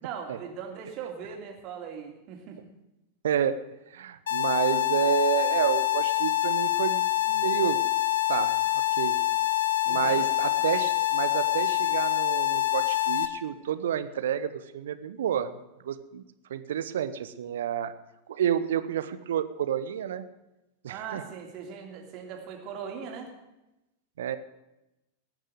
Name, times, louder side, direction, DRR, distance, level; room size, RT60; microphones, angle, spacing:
voice 1, 0.0-2.6 9.8-10.3 20.9-23.3, right 7 dB, 40° right, 2 dB, 2.9 m, -39 dB
voice 2, 3.2-3.6 3.9-7.8 8.3-8.6 9.0-9.2 9.9-15.5 15.8-16.2 16.5-17.9 18.3-20.3 20.8-21.2 24.2-24.4, right 9 dB, 60° right, 12 dB, 0.9 m, -29 dB
sound 1, 4.3-13.3, left 15 dB, 65° left, 0.9 m, -26 dB
19.5 x 6.6 x 7.9 m, 0.95 s
figure-of-eight pair, 90°, 0 cm